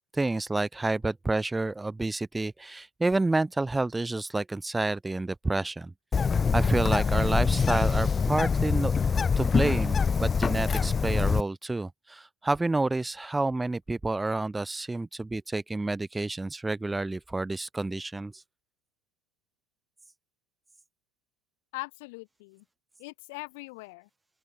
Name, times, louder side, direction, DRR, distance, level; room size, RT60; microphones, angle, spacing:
voice 1, 0.1-5.9 6.5-8.9 9.4-18.3, right 2 dB, 10° right, 2.0 m, -29 dB
Bird, 6.1-11.4, left 5 dB, 25° left, 0.3 m, -25 dB
voice 2, 21.7-22.6 23.0-24.1, left 26 dB, 65° left, 4.5 m, -41 dB
open air
hypercardioid pair, 80°, 0 cm